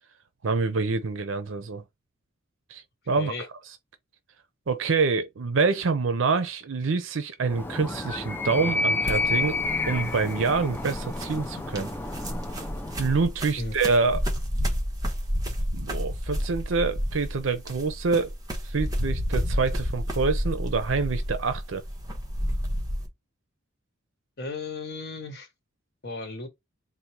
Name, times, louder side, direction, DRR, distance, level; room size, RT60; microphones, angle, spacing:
voice 1, 0.4-1.8 2.7-3.3 4.7-9.6 9.9-11.9 13.0-14.2 15.7-18.3 18.7-21.8, right 4 dB, 70° right, 0.6 m, -26 dB
voice 2, 3.1-3.5 13.6-13.8 24.4-25.5 26.0-26.5, left 3 dB, 55° left, 1.0 m, -35 dB
Animal, 7.4-13.3, left 3 dB, 10° left, 0.4 m, -30 dB
sound 1, 9.0-23.1, equal, 20° right, 1.0 m, -30 dB
4.1 x 2.1 x 4.5 m
head